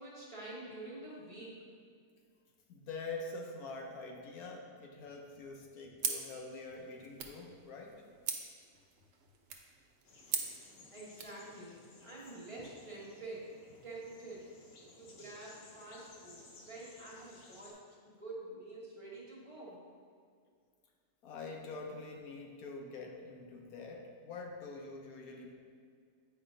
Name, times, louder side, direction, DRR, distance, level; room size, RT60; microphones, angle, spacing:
voice 1, 0.0-1.5 10.9-13.5 13.8-14.5 15.0-17.8 18.0-19.8, right 2 dB, 20° right, -6 dB, 1.1 m, -47 dB
voice 2, 2.7-8.0 12.6-12.7 21.2-25.6, left 3 dB, 70° left, 1 dB, 1.1 m, -45 dB
sound 1, 6.0-11.4, right 6 dB, 60° right, 0.7 m, -42 dB
sound 2, 10.0-17.7, left 2 dB, 90° left, 1.5 m, -58 dB
8.7 x 4.9 x 2.7 m, 2.1 s
omnidirectional pair, 1.7 m